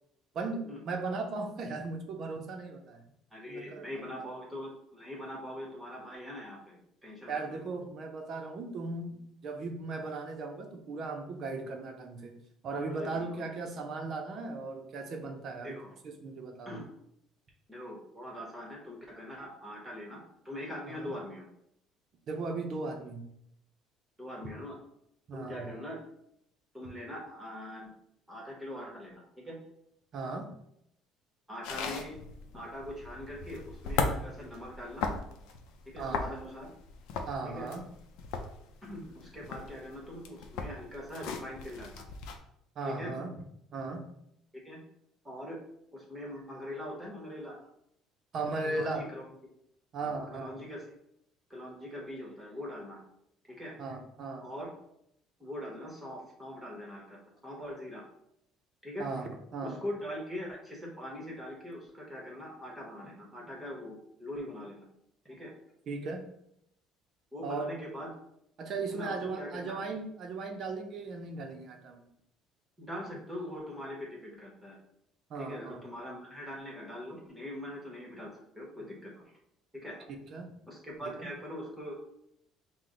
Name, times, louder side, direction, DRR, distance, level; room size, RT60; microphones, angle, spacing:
voice 1, 0.3-3.0 3.5-4.0 7.3-12.4 12.6-15.8 16.0-16.8 20.8-21.1 22.3-23.3 25.3-25.7 30.1-30.5 36.0-36.2 37.3-37.8 42.8-43.3 43.7-44.1 48.3-49.1 49.9-50.6 53.8-54.5 59.0-59.8 65.9-66.2 67.4-67.7 68.6-72.0 75.3-75.9 80.3-80.5 81.2-81.3, right 3 dB, 45° right, 4 dB, 0.5 m, -37 dB
voice 2, 3.3-7.6 12.9-13.5 15.6-15.9 16.6-16.9 17.7-21.5 24.2-24.8 25.3-26.0 26.7-27.9 28.3-29.6 31.5-32.2 32.5-35.1 35.9-36.7 37.4-37.7 38.8-42.0 42.8-43.1 44.5-44.8 45.2-45.6 45.9-47.6 48.6-49.2 50.0-50.9 51.5-53.0 53.5-53.7 54.4-54.7 55.4-57.2 57.4-58.0 58.8-59.1 59.6-64.8 65.2-65.5 67.3-68.1 68.9-69.8 72.8-74.8 75.4-79.2 79.8-80.1 80.7-82.0, left 1 dB, 5° right, -3 dB, 1.1 m, -42 dB
sound 1, 31.6-42.4, left 4 dB, 80° left, 0.5 m, -38 dB
5.9 x 2.1 x 3.8 m, 0.76 s
cardioid pair, 140°, 0 cm